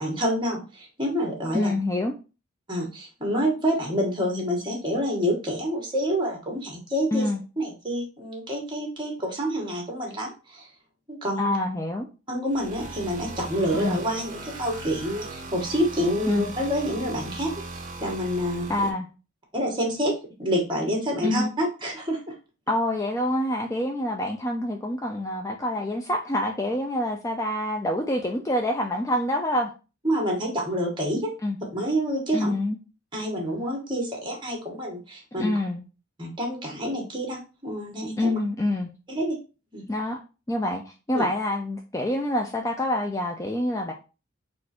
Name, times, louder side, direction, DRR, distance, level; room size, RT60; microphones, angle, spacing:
voice 1, 0.0-1.7 2.7-7.3 7.6-10.7 11.1-11.5 12.3-18.7 19.5-22.2 30.0-31.3 31.7-32.5 33.1-35.5 36.2-38.4 39.1-39.4 39.7-39.9 41.1-41.3, equal, 25° right, 0 dB, 1.6 m, -28 dB
voice 2, 1.5-2.1 7.1-7.4 11.4-12.1 13.8-14.0 16.3-16.5 18.7-19.1 21.2-21.5 22.7-29.7 31.4-31.6 32.3-32.8 35.4-35.8 38.2-38.9 39.9-40.2 40.5-43.9, left 1 dB, 15° left, 2 dB, 0.4 m, -26 dB
sound 1, 12.5-18.9, right 3 dB, 40° right, 0.8 m, -38 dB
4.2 x 2.5 x 4.3 m, 0.32 s
head